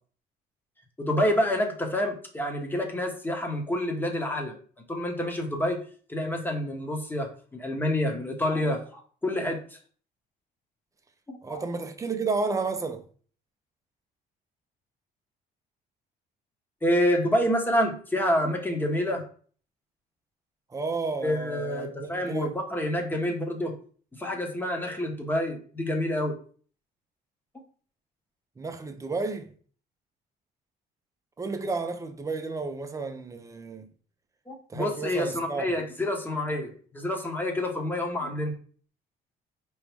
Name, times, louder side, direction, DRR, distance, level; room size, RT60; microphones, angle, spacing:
voice 1, 1.0-4.5 4.9-5.8 6.1-9.8 11.3-11.6 16.8-19.2 21.2-23.7 24.2-26.3 34.5-38.5, left 1 dB, 10° left, 1.1 m, -28 dB
voice 2, 11.4-13.0 20.7-22.6 28.6-29.5 31.4-33.9 34.7-35.7, right 4 dB, 20° right, 0.6 m, -32 dB
4.6 x 3.1 x 3.4 m
cardioid pair, 110°, 17 cm